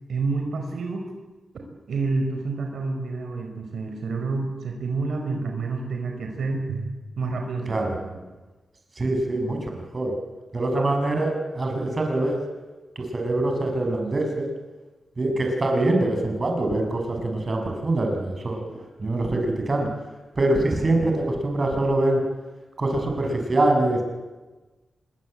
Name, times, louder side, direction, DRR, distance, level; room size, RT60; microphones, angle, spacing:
voice 1, 0.1-1.0 1.9-8.2, right 3 dB, 80° right, 3 dB, 5.1 m, -29 dB
voice 2, 9.0-10.1 10.5-12.4 12.9-14.5 15.2-18.6 19.0-19.9 20.3-22.2 22.8-24.0, right 2 dB, 35° right, 3 dB, 6.4 m, -24 dB
25.0 x 22.0 x 8.9 m, 1.2 s
wide cardioid pair, 100°, 0 cm